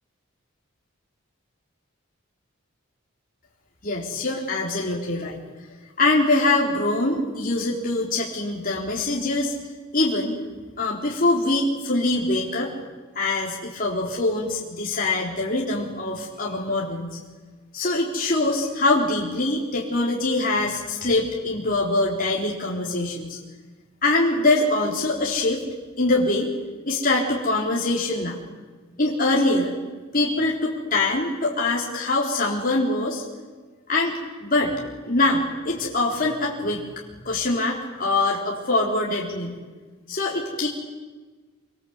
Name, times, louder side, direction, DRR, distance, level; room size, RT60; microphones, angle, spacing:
voice 1, 3.8-5.4 6.0-9.5 9.9-10.4 10.8-12.7 13.2-17.2 17.7-23.4 24.0-25.6 26.0-26.5 26.9-28.4 29.0-29.7 30.1-33.2 33.9-34.7 35.1-36.8 37.2-39.6 40.1-40.7, left 2 dB, 40° left, -3 dB, 4.0 m, -23 dB
26.5 x 25.5 x 8.2 m, 1.3 s
head